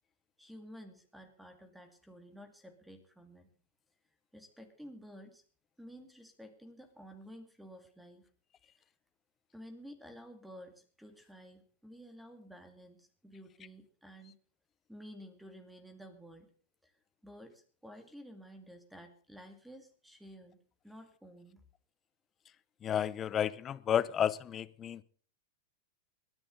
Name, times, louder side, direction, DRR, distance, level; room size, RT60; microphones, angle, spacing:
voice 1, 0.4-3.5 4.3-5.4 5.8-8.3 9.5-14.4 14.9-16.5 16.8-16.9 17.2-20.6 20.8-21.6, equal, 5° right, 7 dB, 2.4 m, -52 dB
voice 2, 22.8-25.0, left 9 dB, 30° left, 18 dB, 0.8 m, -32 dB
21.5 x 10.5 x 4.0 m, 0.43 s
hypercardioid pair, 115°, 0 cm